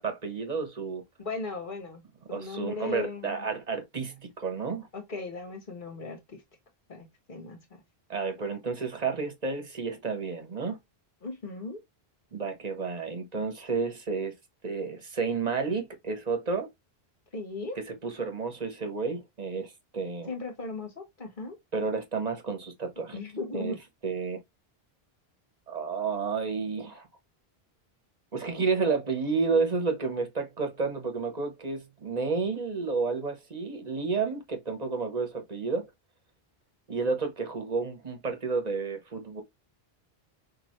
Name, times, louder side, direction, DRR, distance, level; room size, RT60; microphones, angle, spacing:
voice 1, 0.0-1.0 2.3-4.9 8.1-10.8 12.3-14.3 14.6-16.7 17.9-20.3 21.7-23.2 23.5-23.7 24.0-24.4 25.7-27.1 28.3-35.9 36.9-39.4, right 4 dB, 40° right, 1.2 m, -31 dB
voice 2, 1.2-3.4 4.9-6.4 6.9-7.8 11.2-11.8 17.3-17.8 20.3-21.6 23.1-23.8, left 3 dB, 55° left, 1.6 m, -37 dB
6.0 x 2.9 x 3.1 m
omnidirectional pair, 1.0 m